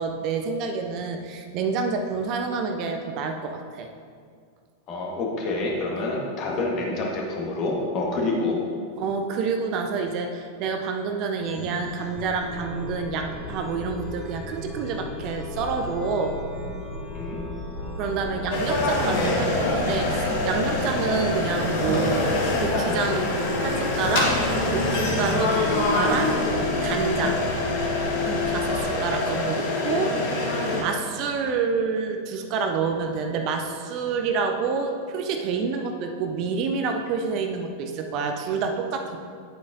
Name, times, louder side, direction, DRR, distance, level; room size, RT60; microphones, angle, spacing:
voice 1, 0.0-3.9 9.0-16.3 18.0-22.2 22.6-23.3 23.6-24.4 24.7-26.3 26.8-27.4 28.2-30.1 30.8-39.2, right 5 dB, 40° right, 5 dB, 0.6 m, -28 dB
voice 2, 4.9-8.6 17.1-17.4, left 2 dB, 35° left, -1 dB, 1.6 m, -27 dB
Chime, 11.4-28.9, left 1 dB, ahead, 1.7 m, -35 dB
sound 1, 18.5-30.8, left 2 dB, 50° left, 1.5 m, -25 dB
9.8 x 8.2 x 2.7 m, 2.1 s
figure-of-eight pair, 90°, 0 cm